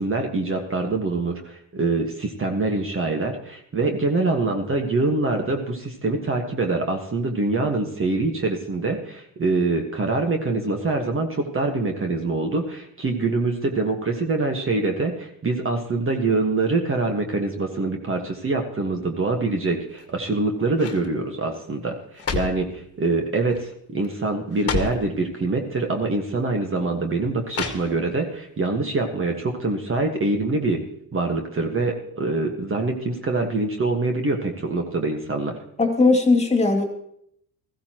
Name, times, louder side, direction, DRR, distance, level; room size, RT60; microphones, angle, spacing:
voice 1, 0.0-30.8 31.1-35.6, right 3 dB, 30° right, 3 dB, 1.6 m, -24 dB
sound 1, 19.9-20.3 20.7-21.1 21.9-22.7 23.5-23.8 24.0-24.1 24.5-25.1 26.0-26.1 27.5-28.2 28.6-28.7, left 5 dB, 35° left, 1.7 m, -30 dB
voice 2, 35.8-36.8, left 3 dB, 15° left, 3 dB, 2.4 m, -18 dB
16.0 x 14.5 x 3.0 m, 0.70 s
cardioid pair, 90°, 40 cm